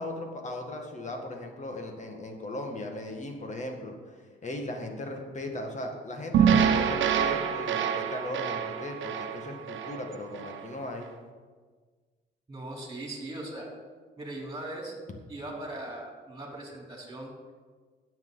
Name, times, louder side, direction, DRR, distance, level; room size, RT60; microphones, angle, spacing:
voice 1, 0.0-4.1 4.4-11.1, left 1 dB, 35° left, 3 dB, 1.8 m, -37 dB
sound 1, 6.3-10.6, right 7 dB, 70° right, 1.1 m, -26 dB
voice 2, 12.5-13.7 14.2-14.9 15.3-17.5, right 1 dB, 20° right, -1 dB, 3.4 m, -39 dB
16.0 x 7.5 x 4.0 m, 1.5 s
cardioid pair, 90°, 20 cm